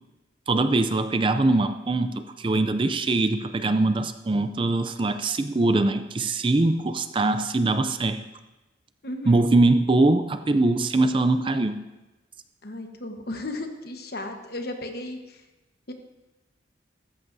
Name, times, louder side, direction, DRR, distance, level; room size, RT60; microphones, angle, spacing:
voice 1, 0.5-8.2 9.3-11.8, right 2 dB, 25° right, 10 dB, 0.4 m, -22 dB
voice 2, 9.0-9.4 12.6-15.4 15.9-16.0, left 1 dB, 55° left, 5 dB, 1.2 m, -35 dB
15.5 x 14.0 x 2.7 m, 1.1 s
head